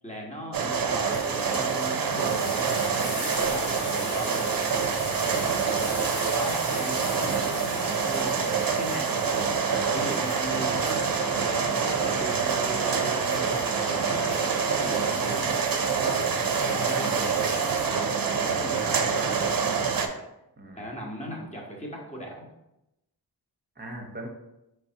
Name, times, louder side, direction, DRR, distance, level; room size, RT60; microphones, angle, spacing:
voice 1, 0.0-4.4 5.2-17.8 18.2-19.5 20.7-22.5, equal, 15° left, -2 dB, 1.1 m, -38 dB
sound 1, 0.5-20.1, right 6 dB, 55° right, 0.6 m, -26 dB
sound 2, 1.0-17.9, left 2 dB, 70° left, 1.3 m, -41 dB
sound 3, 9.6-15.4, left 5 dB, 45° left, 0.5 m, -44 dB
voice 2, 23.8-24.3, right 1 dB, 25° right, 1 dB, 0.9 m, -41 dB
4.7 x 3.3 x 2.8 m, 0.89 s
wide cardioid pair, 75°, 41 cm